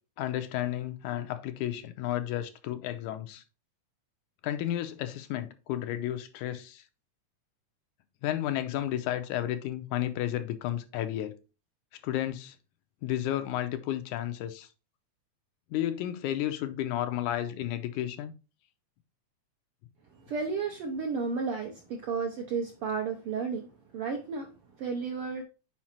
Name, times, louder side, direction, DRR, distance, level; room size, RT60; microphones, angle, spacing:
voice 1, 0.2-3.4 4.4-6.8 8.2-11.4 12.0-12.6 13.0-14.7 15.7-18.3, left 12 dB, 85° left, 2.1 m, -32 dB
voice 2, 20.2-24.5 24.8-25.4, right 5 dB, 75° right, 1.3 m, -33 dB
5.9 x 4.9 x 4.3 m
omnidirectional pair, 3.5 m